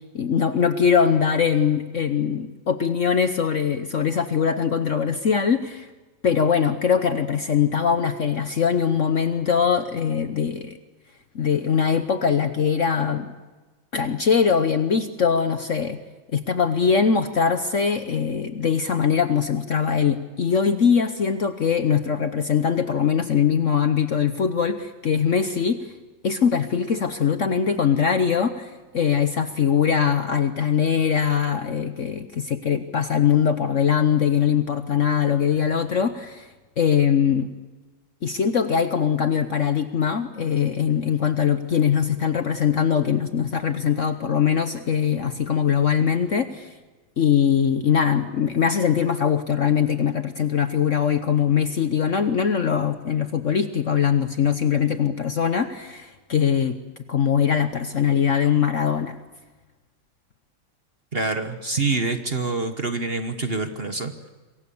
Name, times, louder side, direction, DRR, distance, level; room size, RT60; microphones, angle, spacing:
voice 1, 0.1-5.9 6.2-10.8 11.3-13.3 13.9-16.0 16.3-25.9 26.2-36.5 36.8-37.5 38.2-46.7 47.2-56.8 57.1-59.2, left 7 dB, 50° left, 9 dB, 1.0 m, -22 dB
voice 2, 61.1-64.3, right 3 dB, 35° right, 8 dB, 1.2 m, -26 dB
27.0 x 22.5 x 7.0 m, 1.3 s
omnidirectional pair, 2.1 m